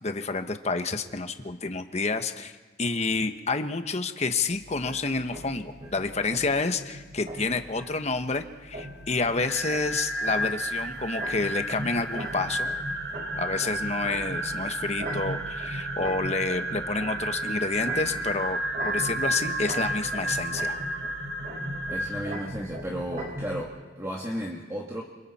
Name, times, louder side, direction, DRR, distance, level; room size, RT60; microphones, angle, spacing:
voice 1, 0.0-2.5 2.8-12.8 13.4-20.8, left 3 dB, 40° left, 8 dB, 1.2 m, -29 dB
sound 1, 4.5-23.6, equal, 45° right, 4.6 m, -39 dB
sound 2, 9.4-22.5, right 1 dB, 65° right, 1.2 m, -32 dB
voice 2, 21.9-25.0, equal, 15° right, -2 dB, 1.8 m, -34 dB
28.5 x 26.5 x 4.3 m, 1.3 s
head